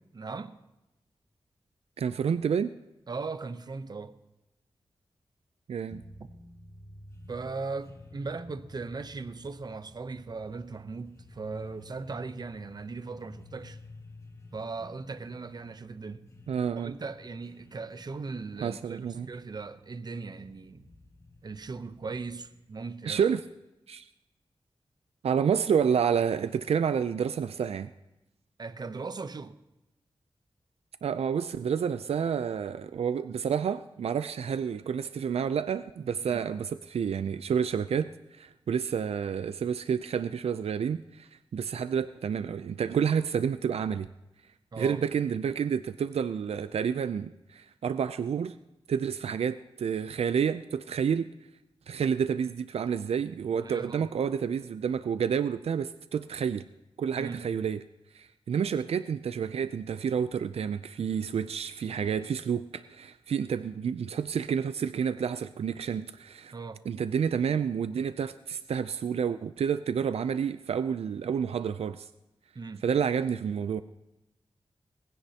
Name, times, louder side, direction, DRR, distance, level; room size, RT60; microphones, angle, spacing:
voice 1, 0.1-0.6 3.1-4.2 7.3-13.8 14.5-16.3 16.8-20.9 21.4-23.2 28.6-29.6 36.3-36.4 44.7-45.0 53.6-54.1 57.1-57.5 66.5-66.8 72.5-72.8, right 4 dB, 45° right, 0.7 m, -38 dB
voice 2, 2.0-2.7 5.7-6.0 16.5-16.9 18.6-19.3 23.1-23.4 23.9-24.1 25.2-27.9 31.0-44.1 44.8-48.5 48.9-51.3 51.9-56.6 57.0-57.8 58.1-66.5 66.9-72.1 72.8-73.8, right 7 dB, 85° right, 0.4 m, -29 dB
sound 1, 5.9-22.7, left 2 dB, 30° left, 1.6 m, -52 dB
19.5 x 16.0 x 2.8 m
wide cardioid pair, 115°, 10 cm